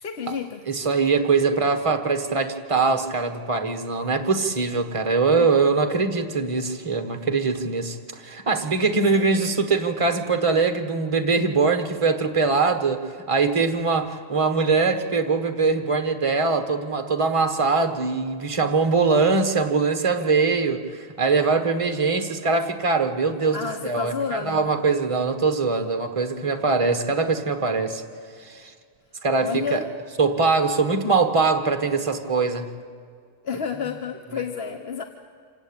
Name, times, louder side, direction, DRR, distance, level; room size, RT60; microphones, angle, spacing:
voice 1, 0.0-0.6 5.4-5.5 9.1-9.6 23.5-24.7 29.4-29.9 33.4-35.0, left 6 dB, 55° left, 6 dB, 1.2 m, -30 dB
voice 2, 0.7-28.0 28.4-28.7 29.2-29.8 30.2-32.7, right 4 dB, 25° right, 7 dB, 1.4 m, -22 dB
26.5 x 17.0 x 8.9 m, 2.2 s
omnidirectional pair, 1.3 m